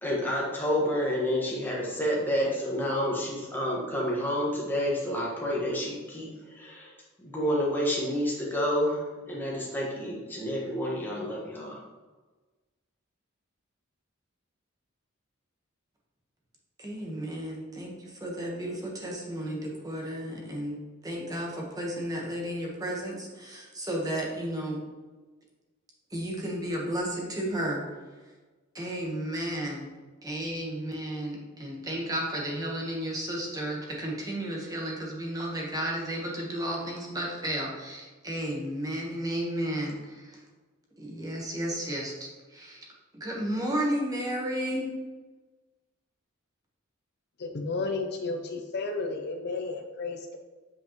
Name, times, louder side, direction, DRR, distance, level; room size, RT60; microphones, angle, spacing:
voice 1, 0.0-6.9 7.2-11.8, equal, 10° left, -4 dB, 1.5 m, -29 dB
voice 2, 16.8-17.9 18.2-20.8 21.0-24.8 26.1-27.8 28.7-29.9 30.2-40.4 41.0-42.1 42.5-42.9 43.1-44.9, right 1 dB, 15° right, -2 dB, 1.2 m, -33 dB
voice 3, 47.4-50.4, left 3 dB, 50° left, 4 dB, 0.5 m, -32 dB
8.0 x 5.4 x 3.0 m, 1.3 s
head